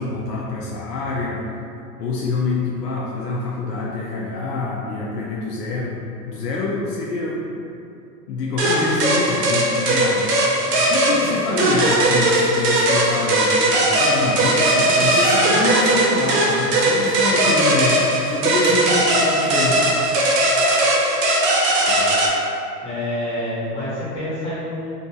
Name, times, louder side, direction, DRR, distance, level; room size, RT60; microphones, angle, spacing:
voice 1, 0.0-1.4 2.0-6.0 6.3-7.5 8.3-10.3 10.9-18.0 18.3-20.0, left 3 dB, 80° left, -4 dB, 0.5 m, -26 dB
sound 1, 8.6-22.3, right 1 dB, 90° right, 0.7 m, -18 dB
voice 2, 21.7-22.1 22.8-24.9, left 1 dB, 40° left, -9 dB, 1.2 m, -28 dB
2.6 x 2.3 x 2.6 m, 2.5 s
hypercardioid pair, 130°, 47 cm